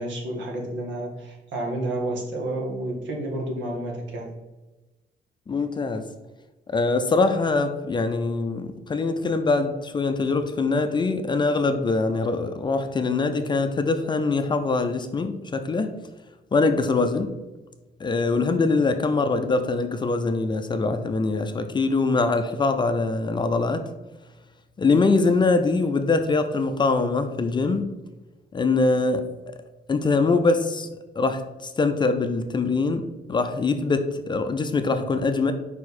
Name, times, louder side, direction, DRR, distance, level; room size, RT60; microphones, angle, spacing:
voice 1, 0.0-4.3, right 1 dB, 85° right, -1 dB, 1.7 m, -30 dB
voice 2, 5.5-6.0 6.7-15.9 16.5-17.3 18.0-23.8 24.8-27.8 28.5-29.2 29.9-30.9 31.2-33.0 33.3-35.5, left 3 dB, 25° left, 8 dB, 0.4 m, -23 dB
5.1 x 4.7 x 4.2 m, 1.1 s
cardioid pair, 155°, 19 cm